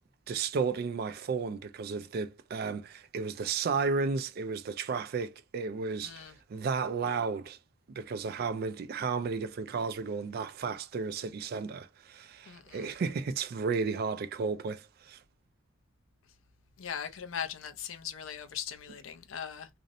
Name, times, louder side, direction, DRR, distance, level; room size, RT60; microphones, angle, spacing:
voice 1, 0.3-7.6 8.0-15.2, right 5 dB, 50° right, 0.3 m, -33 dB
voice 2, 6.0-6.3 12.5-12.9 16.8-19.7, left 8 dB, 80° left, 0.5 m, -39 dB
2.5 x 2.0 x 2.6 m
head